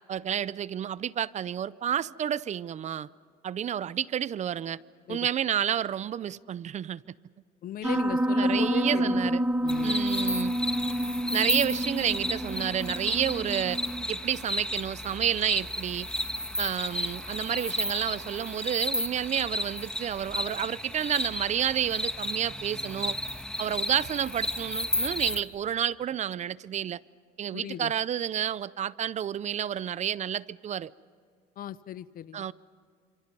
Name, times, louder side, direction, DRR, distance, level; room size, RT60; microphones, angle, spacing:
voice 1, 0.1-3.1 3.4-4.8 5.1-7.0 8.4-9.4 9.8-10.5 11.3-13.8 14.1-16.1 16.6-23.2 23.6-27.0 27.4-30.9 32.3-32.5, right 9 dB, 45° right, 0.5 m, -30 dB
voice 2, 7.6-9.3 9.6-10.0 27.5-27.9 31.6-32.5, left 11 dB, 60° left, 0.8 m, -37 dB
Piano, 7.8-14.0, equal, 10° right, 0.9 m, -28 dB
sound 1, 9.7-25.4, left 1 dB, 5° left, 1.7 m, -33 dB
29.5 x 26.5 x 5.5 m
cardioid pair, 110°, 17 cm